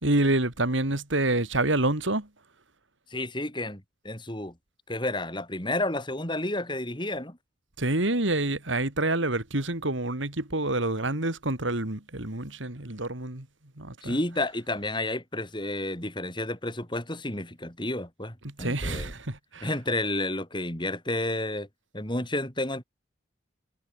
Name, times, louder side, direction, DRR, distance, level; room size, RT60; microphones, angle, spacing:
voice 1, 0.0-2.3 7.8-13.4 13.8-14.2 18.6-19.7, right 2 dB, 75° right, 3.2 m, -27 dB
voice 2, 3.1-4.5 4.9-7.4 14.0-19.1 19.6-21.7 21.9-22.8, left 1 dB, 25° left, 5.1 m, -31 dB
head